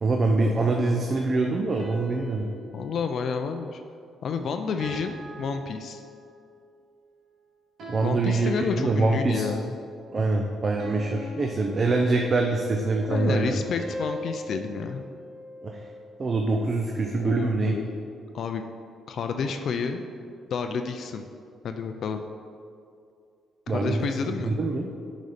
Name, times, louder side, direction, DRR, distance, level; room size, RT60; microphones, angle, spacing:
voice 1, 0.0-2.5 7.9-9.5 10.1-13.6 15.6-15.8 16.2-17.8 23.7-24.1 24.5-24.9, right 3 dB, 40° right, 2 dB, 0.6 m, -24 dB
sound 1, 1.8-4.3 4.8-6.5 7.8-9.3 10.8-12.7 13.8-16.2, equal, 65° right, 1.7 m, -42 dB
voice 2, 2.7-3.8 4.2-6.0 8.0-9.7 13.1-15.0 17.2-18.0 18.3-18.6 19.1-21.2 21.6-22.2 23.7-24.5, left 5 dB, 60° left, 6 dB, 0.4 m, -30 dB
8.0 x 4.1 x 5.0 m, 2.4 s
cardioid pair, 90°, 0 cm